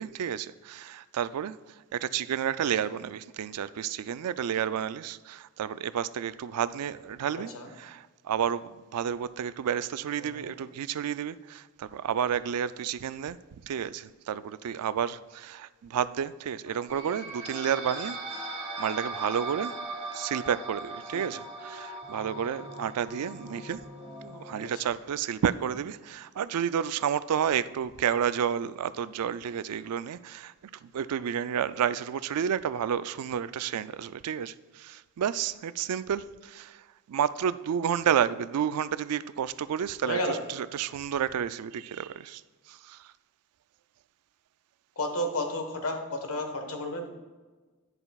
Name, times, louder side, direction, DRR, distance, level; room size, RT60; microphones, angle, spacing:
voice 1, 0.0-1.6 1.9-7.5 7.8-8.6 8.9-13.4 13.6-18.5 18.8-19.7 20.1-23.8 24.2-30.5 30.8-36.8 37.1-42.4 42.7-43.0, right 8 dB, 85° right, 0.4 m, -31 dB
voice 2, 7.3-7.7 10.2-10.5 16.7-16.8 21.1-21.3 24.6-24.9 40.1-40.4 45.0-47.1, left 1 dB, 70° left, 1.3 m, -32 dB
sound 1, 16.9-24.5, right 2 dB, 10° right, 2.7 m, -39 dB
11.0 x 9.9 x 2.4 m
head